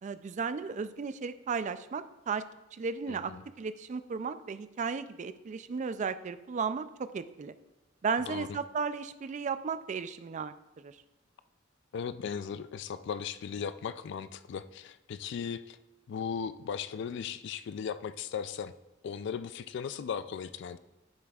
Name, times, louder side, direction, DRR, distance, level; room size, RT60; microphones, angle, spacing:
voice 1, 0.0-2.4 2.7-7.5 8.0-11.0, right 5 dB, 35° right, 13 dB, 0.3 m, -35 dB
voice 2, 3.1-3.4 8.3-8.5 11.9-15.8 16.1-18.7 19.0-20.8, left 7 dB, 60° left, 13 dB, 0.3 m, -37 dB
9.5 x 7.4 x 2.3 m, 1.0 s
head